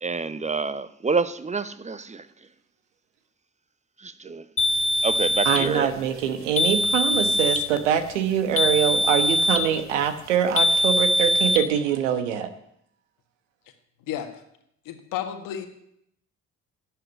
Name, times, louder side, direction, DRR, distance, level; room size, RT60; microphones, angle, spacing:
voice 1, 0.0-2.3 4.0-4.4 5.0-5.9 8.6-8.8, right 4 dB, 20° right, 0.8 m, -27 dB
sound 1, 4.6-5.7 6.6-7.7 8.6-9.7 10.6-11.6, left 1 dB, 35° left, 1.4 m, -22 dB
voice 2, 5.4-12.5, right 9 dB, 80° right, 1.1 m, -24 dB
voice 3, 14.1-14.4 14.9-15.7, left 10 dB, 65° left, 1.7 m, -32 dB
12.0 x 7.9 x 9.4 m
figure-of-eight pair, 40°, 36 cm